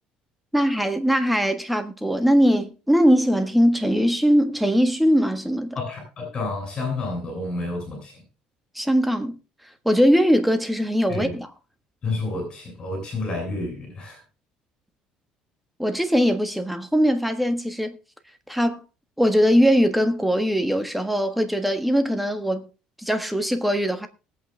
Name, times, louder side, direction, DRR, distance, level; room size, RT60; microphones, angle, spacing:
voice 1, 0.5-5.8 8.7-9.4 9.8-11.5 15.8-18.0 18.5-18.8 19.2-22.7 23.0-24.1, equal, ahead, 1.4 m, -21 dB
voice 2, 5.7-8.2 11.1-11.3 12.0-14.2, left 2 dB, 30° left, 7.3 m, -30 dB
20.0 x 8.5 x 3.4 m
cardioid pair, 140°, 3 cm